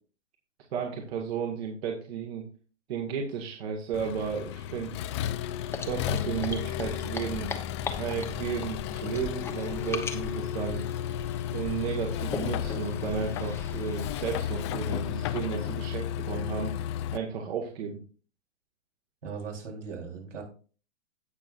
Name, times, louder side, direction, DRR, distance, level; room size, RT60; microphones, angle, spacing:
voice 1, 0.7-2.4 2.9-4.9 5.9-7.5 8.0-10.8 11.5-16.7 17.1-17.9, right 7 dB, 55° right, 1 dB, 2.0 m, -33 dB
Accelerating revving vroom, 3.9-17.2, left 11 dB, 25° left, 0.4 m, -33 dB
sound 1, 5.7-15.2, left 4 dB, 5° left, 0.9 m, -40 dB
voice 2, 19.2-20.4, right 5 dB, 80° right, 0 dB, 4.0 m, -38 dB
17.0 x 6.1 x 2.5 m, 0.39 s
hypercardioid pair, 130°, 36 cm